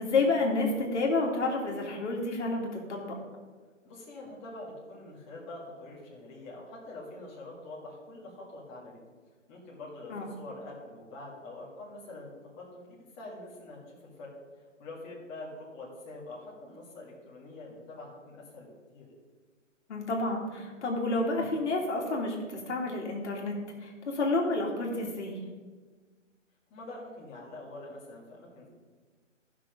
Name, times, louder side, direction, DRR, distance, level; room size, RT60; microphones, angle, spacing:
voice 1, 0.0-3.1 10.1-10.3 19.9-25.4, left 2 dB, 60° left, 0 dB, 2.4 m, -30 dB
voice 2, 3.8-9.0 9.5-12.3 12.6-14.3 14.8-19.1 26.7-28.7, left 2 dB, 15° left, -6 dB, 2.1 m, -45 dB
13.5 x 6.0 x 5.1 m, 1.4 s
hypercardioid pair, 160°, 38 cm